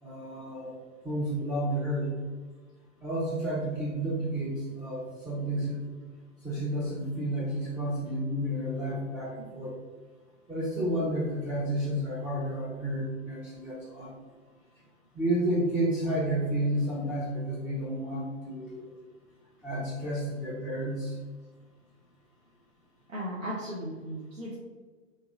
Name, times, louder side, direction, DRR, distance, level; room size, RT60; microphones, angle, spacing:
voice 1, 0.0-0.7 1.0-2.1 3.0-5.8 6.4-9.7 10.5-14.1 15.1-18.8 19.6-21.1, right 1 dB, 5° right, -9 dB, 0.6 m, -31 dB
voice 2, 23.1-24.5, equal, 80° right, -6 dB, 1.1 m, -36 dB
3.6 x 2.8 x 3.9 m, 1.4 s
figure-of-eight pair, 115°, 38 cm